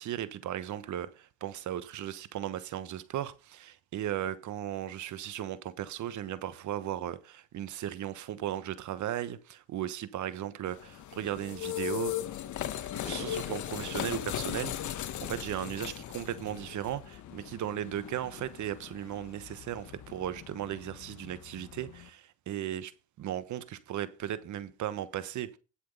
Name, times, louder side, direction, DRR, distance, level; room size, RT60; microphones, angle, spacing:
voice 1, 0.0-12.1 13.0-22.9 23.2-25.6, right 11 dB, 75° right, 1.2 m, -36 dB
sound 1, 10.7-22.1, left 12 dB, 75° left, 1.0 m, -39 dB
sound 2, 13.0-15.5 16.0-16.1, left 3 dB, 20° left, 2.8 m, -50 dB
11.0 x 6.3 x 5.4 m
cardioid pair, 90°, 30 cm